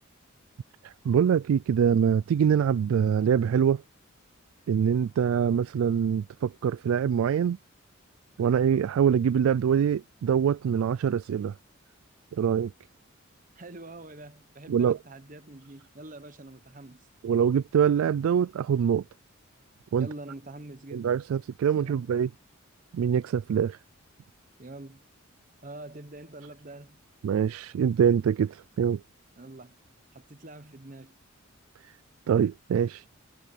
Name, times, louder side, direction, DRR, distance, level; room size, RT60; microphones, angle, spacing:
voice 1, 0.8-3.8 4.7-7.6 8.4-11.5 12.3-12.7 14.7-15.0 17.2-19.0 19.9-20.1 20.9-22.3 22.9-23.8 27.2-29.0 32.3-33.0, right 8 dB, 85° right, 0.3 m, -24 dB
voice 2, 13.5-17.1 20.0-21.1 21.7-22.1 24.6-25.0 25.6-27.0 29.4-29.8 30.1-31.2, right 2 dB, 40° right, 1.1 m, -45 dB
head